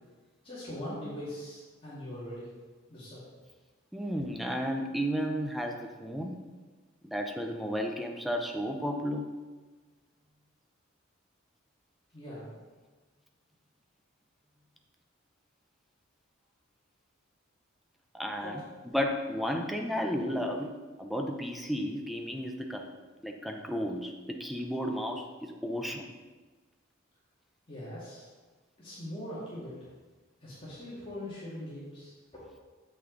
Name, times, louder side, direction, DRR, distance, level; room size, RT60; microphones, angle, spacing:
voice 1, 0.4-2.5 2.9-3.2 12.1-12.6 18.4-18.6 27.7-28.3 28.8-29.8 30.4-32.4, left 1 dB, 30° left, -10 dB, 2.1 m, -41 dB
voice 2, 3.9-6.4 7.0-9.3 18.1-18.6 18.9-20.7 21.0-22.9 23.2-26.1, equal, ahead, 2 dB, 0.6 m, -33 dB
7.9 x 6.1 x 3.9 m, 1.3 s
head